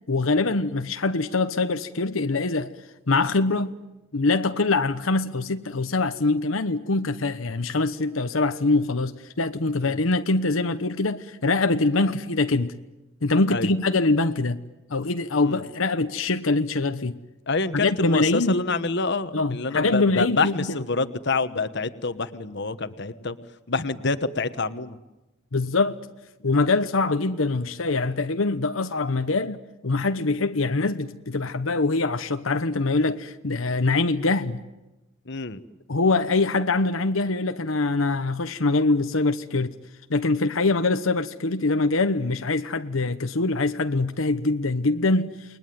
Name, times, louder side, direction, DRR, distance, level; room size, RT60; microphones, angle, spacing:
voice 1, 0.1-2.7 3.1-3.7 4.1-12.7 13.2-14.6 14.9-17.2 17.7-18.6 19.3-20.5 25.5-26.0 26.4-34.6 35.9-39.7 40.1-45.3, left 3 dB, 85° left, 1.0 m, -23 dB
voice 2, 17.5-23.4 23.7-25.0 35.3-35.6, left 3 dB, 60° left, 1.3 m, -27 dB
29.0 x 21.0 x 9.4 m
head